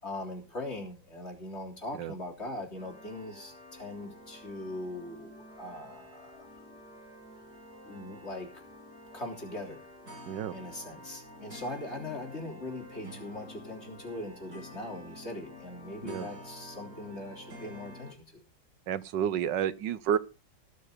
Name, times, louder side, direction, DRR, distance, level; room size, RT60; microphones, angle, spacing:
voice 1, 0.0-6.5 7.8-8.5 9.1-9.8 10.5-18.4, left 1 dB, 35° left, 1 dB, 3.7 m, -40 dB
sound 1, 2.7-18.1, equal, 65° right, 7.9 m, -49 dB
voice 2, 18.9-20.2, right 9 dB, 85° right, 15 dB, 1.6 m, -30 dB
19.0 x 6.7 x 5.1 m, 0.33 s
omnidirectional pair, 1.9 m